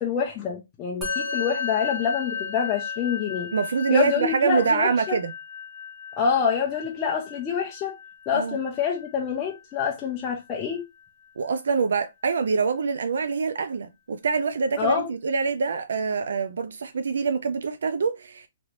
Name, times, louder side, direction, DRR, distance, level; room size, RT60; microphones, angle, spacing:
voice 1, 0.0-3.5 3.9-5.2 6.2-8.0 8.3-10.8 14.8-15.1, left 6 dB, 15° left, 0.4 m, -26 dB
Musical instrument, 1.0-10.5, left 5 dB, 5° right, 1.0 m, -35 dB
voice 2, 3.5-5.3 8.3-8.6 11.4-18.5, right 5 dB, 75° right, 0.4 m, -25 dB
3.1 x 2.9 x 2.5 m
hypercardioid pair, 170°, 0 cm